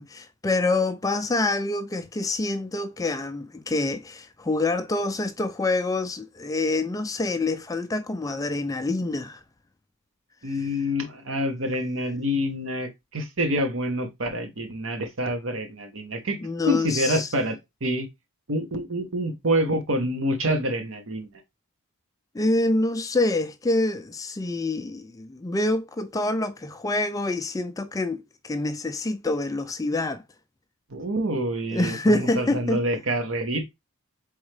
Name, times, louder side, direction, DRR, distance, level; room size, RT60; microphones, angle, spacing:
voice 1, 0.0-9.4 10.5-10.7 16.4-17.3 22.3-30.2 31.7-32.8, left 2 dB, 15° left, 0.3 m, -26 dB
voice 2, 10.4-16.4 16.7-18.1 18.5-21.3 30.9-33.7, equal, 60° right, 1.0 m, -27 dB
4.4 x 3.6 x 3.2 m
head